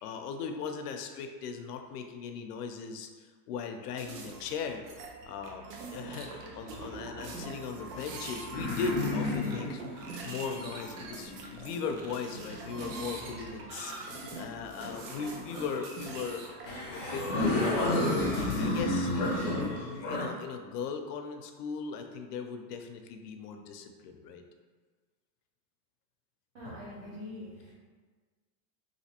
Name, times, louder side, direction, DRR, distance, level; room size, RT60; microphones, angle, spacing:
voice 1, 0.0-4.8 5.3-19.1 20.1-24.4, left 5 dB, 75° left, 5 dB, 0.6 m, -38 dB
sound 1, 3.9-18.8, right 3 dB, 75° right, 0.7 m, -44 dB
sound 2, 5.9-6.9 7.7-13.1 14.0-15.7 16.3-16.4 16.7-20.3, left 2 dB, 30° left, 0.5 m, -33 dB
voice 2, 26.5-27.7, left 1 dB, 45° right, -9 dB, 0.8 m, -43 dB
3.3 x 2.6 x 2.8 m, 1.4 s
supercardioid pair, 170°, 48 cm